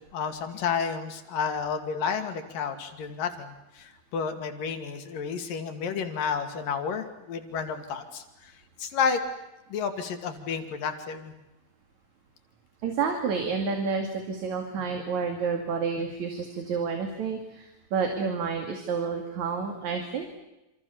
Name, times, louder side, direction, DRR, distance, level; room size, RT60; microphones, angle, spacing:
voice 1, 0.0-8.5 8.8-9.2 9.7-11.3, left 6 dB, 65° left, 6 dB, 4.0 m, -31 dB
voice 2, 12.8-20.4, right 5 dB, 55° right, 4 dB, 3.5 m, -30 dB
28.0 x 27.0 x 7.1 m, 0.96 s
omnidirectional pair, 4.2 m